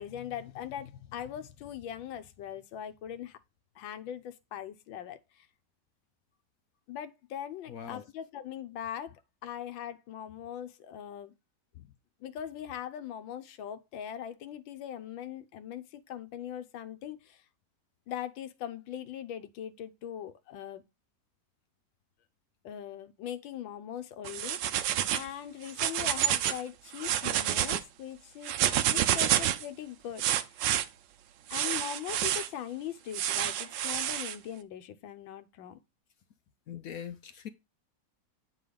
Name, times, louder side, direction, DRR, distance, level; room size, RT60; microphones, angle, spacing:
voice 1, 0.0-3.4 3.7-5.5 6.9-11.3 12.2-17.4 18.1-20.8 22.6-24.8 25.1-28.5 28.8-30.6 31.5-35.8, left 10 dB, 90° left, 1.5 m, -41 dB
voice 2, 7.7-8.1 11.7-11.9 36.7-37.5, left 8 dB, 70° left, 0.8 m, -42 dB
sound 1, 24.2-25.3 25.6-26.6 26.9-27.8 28.4-29.7 30.2-30.8 31.5-32.5 33.1-34.3, right 11 dB, 75° right, 1.3 m, -28 dB
9.0 x 3.9 x 5.0 m
omnidirectional pair, 2.0 m